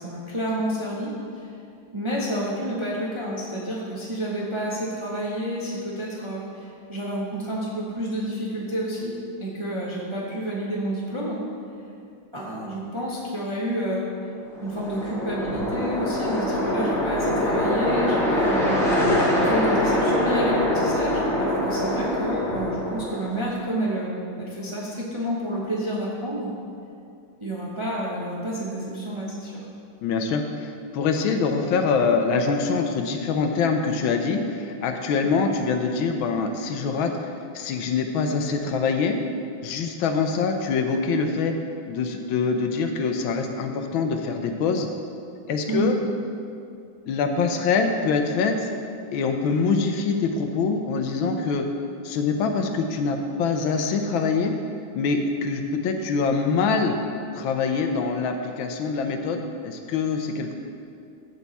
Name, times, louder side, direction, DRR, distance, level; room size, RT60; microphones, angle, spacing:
voice 1, 0.0-1.5 1.9-9.1 9.4-11.4 12.3-14.1 14.6-18.8 19.4-26.5 27.4-29.7 45.7-45.9, equal, 20° right, -5 dB, 0.7 m, -29 dB
sound 1, 14.5-23.6, left 1 dB, ahead, 1.2 m, -24 dB
voice 2, 30.0-39.2 39.6-41.5 41.9-44.9 45.5-46.0 47.1-48.7 49.1-51.6 52.0-54.5 54.9-57.0 57.3-60.5, left 5 dB, 80° left, 5 dB, 1.4 m, -24 dB
14.0 x 4.7 x 4.1 m, 2.5 s
omnidirectional pair, 2.2 m